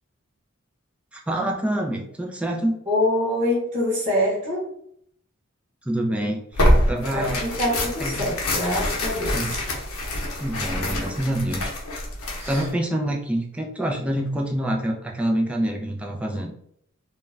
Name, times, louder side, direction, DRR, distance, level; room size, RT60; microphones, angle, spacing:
voice 1, 1.1-2.8 5.9-7.4 8.0-8.2 9.3-9.5 10.4-11.7 12.5-16.5, right 1 dB, 5° right, 0 dB, 0.3 m, -26 dB
voice 2, 2.9-4.7 7.1-9.6 12.4-12.7, left 1 dB, 35° right, -8 dB, 0.9 m, -25 dB
Tearing, 6.5-12.7, left 1 dB, 85° left, 0.7 m, -25 dB
2.4 x 2.1 x 3.1 m, 0.69 s
head